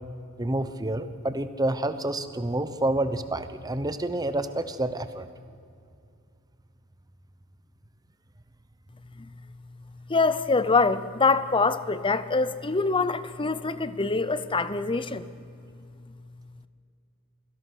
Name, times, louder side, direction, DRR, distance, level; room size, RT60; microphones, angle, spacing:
voice 1, 0.4-5.3, right 1 dB, 20° right, 11 dB, 1.0 m, -28 dB
voice 2, 10.1-15.3, left 4 dB, 25° left, 14 dB, 0.8 m, -24 dB
25.5 x 17.0 x 6.3 m, 2.4 s
head